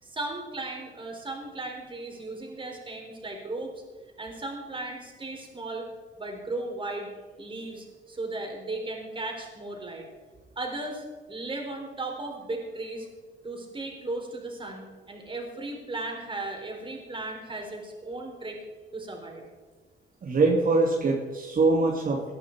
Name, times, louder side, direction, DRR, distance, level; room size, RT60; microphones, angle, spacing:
voice 1, 0.0-3.7 4.2-5.9 6.2-7.1 7.4-10.1 10.6-13.1 13.4-18.6 18.9-19.4, right 2 dB, 25° right, 1 dB, 4.2 m, -36 dB
voice 2, 20.2-22.3, right 3 dB, 45° right, -3 dB, 2.6 m, -23 dB
18.0 x 11.0 x 4.7 m, 1.4 s
cardioid pair, 90°, 20 cm